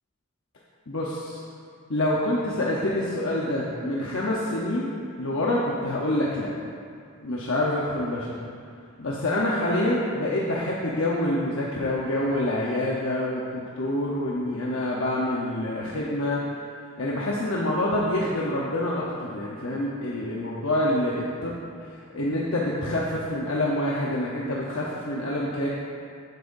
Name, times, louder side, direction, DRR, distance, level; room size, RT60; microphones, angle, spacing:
voice 1, 0.9-1.4 1.9-6.5 7.2-8.3 9.0-16.4 17.0-21.6 22.1-25.7, left 1 dB, 70° left, -5 dB, 0.9 m, -26 dB
12.5 x 7.7 x 2.6 m, 2.3 s
head